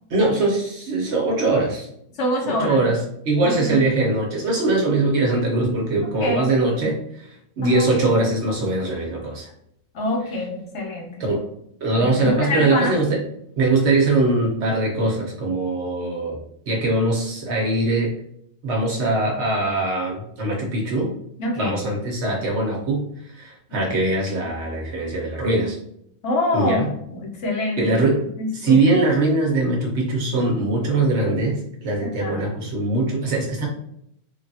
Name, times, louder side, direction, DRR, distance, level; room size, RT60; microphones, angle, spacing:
voice 1, 0.1-1.9 2.4-7.0 7.6-9.5 11.2-11.5 11.8-13.2 13.6-16.4 16.7-18.1 18.6-21.1 21.6-23.1 23.4-25.8 26.5-26.9 27.8-28.3 28.6-33.7, right 2 dB, 60° right, -1 dB, 1.0 m, -21 dB
voice 2, 2.2-2.9 3.4-3.9 6.2-6.5 6.8-6.9 7.6-7.9 9.9-11.2 12.0-13.0 21.4-21.9 23.7-23.8 26.2-28.1 28.4-28.8 32.1-32.5, left 1 dB, 65° left, 0 dB, 0.9 m, -26 dB
3.3 x 2.2 x 2.6 m, 0.73 s
omnidirectional pair, 1.4 m